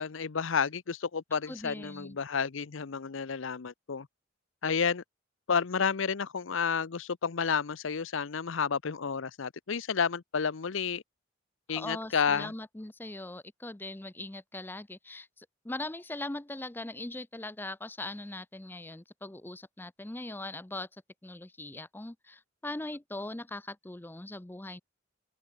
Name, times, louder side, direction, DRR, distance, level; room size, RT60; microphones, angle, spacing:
voice 1, 0.0-4.1 4.6-5.0 5.5-11.0 11.7-12.5, left 6 dB, 70° left, 0.7 m, -31 dB
voice 2, 1.5-2.2 11.7-20.9 21.2-24.8, left 2 dB, 10° left, 0.5 m, -40 dB
open air
head